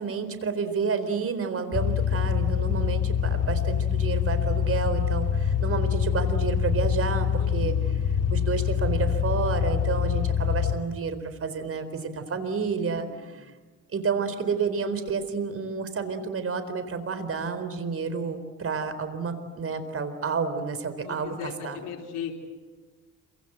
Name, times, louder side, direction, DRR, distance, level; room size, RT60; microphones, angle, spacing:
voice 1, 0.0-7.8 8.3-13.5 13.9-21.4 21.6-21.8, right 5 dB, 50° right, 10 dB, 4.3 m, -30 dB
sound 1, 1.7-10.8, left 8 dB, 55° left, 3.4 m, -25 dB
voice 2, 7.4-8.0 13.1-13.4 21.0-22.3, left 8 dB, 80° left, -2 dB, 4.0 m, -38 dB
27.5 x 25.0 x 8.1 m, 1.3 s
cardioid pair, 90°, 30 cm